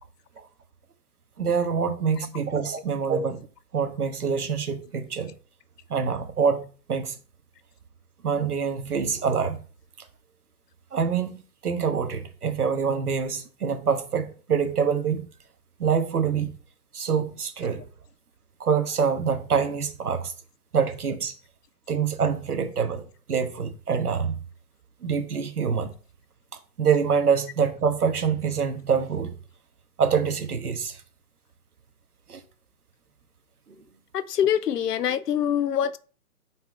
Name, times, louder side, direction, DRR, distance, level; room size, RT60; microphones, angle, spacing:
voice 1, 1.4-3.5 3.7-5.3 5.9-7.2 8.2-9.6 10.9-15.3 15.8-16.5 16.9-17.9 18.6-20.3 20.7-21.3 21.9-24.4 25.0-25.9 26.8-29.3 30.0-31.0 32.3-32.4, right 6 dB, 70° right, 1.4 m, -25 dB
voice 2, 34.1-36.0, left 9 dB, 90° left, 0.7 m, -24 dB
5.7 x 4.7 x 4.4 m
hypercardioid pair, 180°, 46 cm